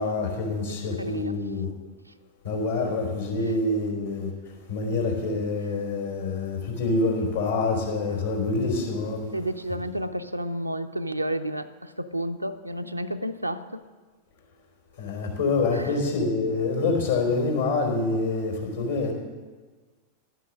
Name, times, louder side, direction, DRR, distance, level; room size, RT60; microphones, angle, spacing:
voice 1, 0.0-1.7 2.4-4.3 4.7-9.2 15.0-19.1, left 3 dB, 70° left, 0 dB, 4.1 m, -26 dB
voice 2, 0.7-1.4 3.4-3.5 8.0-8.2 9.3-13.8 15.7-15.9, right 1 dB, 85° right, 7 dB, 0.6 m, -31 dB
12.0 x 9.3 x 7.5 m, 1.4 s
figure-of-eight pair, 90°, 0 cm